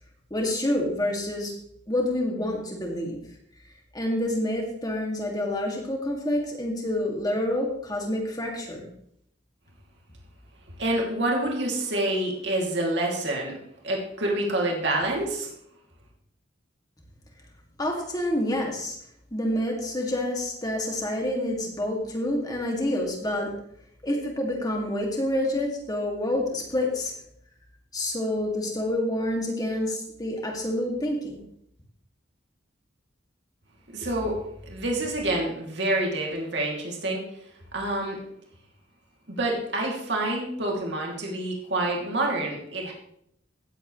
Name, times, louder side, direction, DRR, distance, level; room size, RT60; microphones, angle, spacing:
voice 1, 0.3-1.5 1.9-3.2 3.9-8.9 17.8-19.0 19.3-23.5 24.0-27.1 27.9-31.4, left 1 dB, 20° left, 0 dB, 2.4 m, -28 dB
voice 2, 10.8-13.6 13.8-15.5 33.9-37.2 37.7-38.2 39.3-42.9, right 1 dB, 65° right, -1 dB, 2.9 m, -27 dB
17.0 x 8.4 x 3.3 m, 0.71 s
head